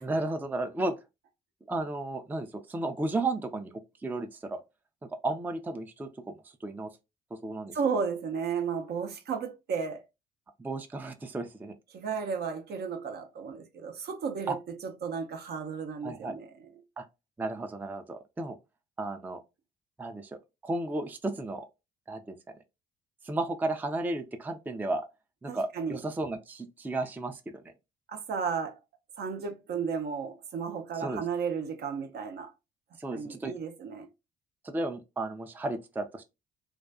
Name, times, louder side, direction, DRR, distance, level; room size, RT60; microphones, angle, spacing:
voice 1, 0.0-1.0 1.7-3.7 4.0-4.6 5.0-6.2 6.6-6.9 7.3-7.7 10.6-11.7 14.5-14.6 16.0-16.3 17.0-17.1 17.4-18.6 19.0-19.4 20.0-21.7 22.1-22.4 23.2-25.1 25.4-27.7 31.0-31.2 33.0-33.5 34.6-36.2, right 2 dB, 10° right, 0.4 m, -33 dB
voice 2, 7.7-10.0 11.9-16.5 25.5-26.0 28.1-28.8 29.2-32.5 33.1-34.1, right 6 dB, 55° right, 0.6 m, -33 dB
2.4 x 2.2 x 2.4 m
hypercardioid pair, 55°, 20 cm